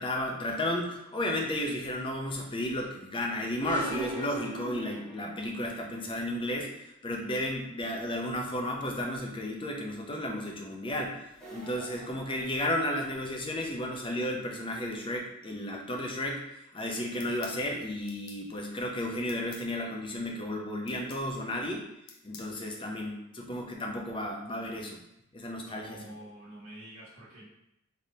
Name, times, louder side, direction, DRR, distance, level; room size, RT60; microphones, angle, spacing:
voice 1, 0.0-11.2 11.5-16.4 16.7-21.9 22.2-25.0 25.3-26.0, left 1 dB, 25° left, 0 dB, 0.6 m, -33 dB
sound 1, 3.6-5.6, right 2 dB, 25° right, 0.7 m, -39 dB
sound 2, 11.3-13.3, right 3 dB, 5° left, 1.0 m, -49 dB
sound 3, 17.2-17.6 18.1-18.4 19.3-19.7 20.9-21.3 22.1-22.5, left 6 dB, 85° left, 0.6 m, -49 dB
voice 2, 25.6-27.5, right 1 dB, 75° right, -10 dB, 1.2 m, -47 dB
3.8 x 3.4 x 2.7 m, 0.84 s
head